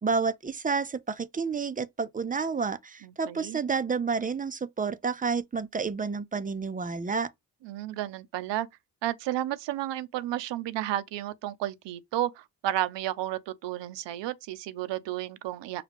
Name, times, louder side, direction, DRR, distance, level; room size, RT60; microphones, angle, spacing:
voice 1, 0.0-7.3, right 5 dB, 20° right, 0.5 m, -30 dB
voice 2, 3.0-3.6 7.6-8.7 9.0-15.8, right 13 dB, 70° right, 0.7 m, -32 dB
5.8 x 2.3 x 3.5 m
supercardioid pair, 65°, 45 cm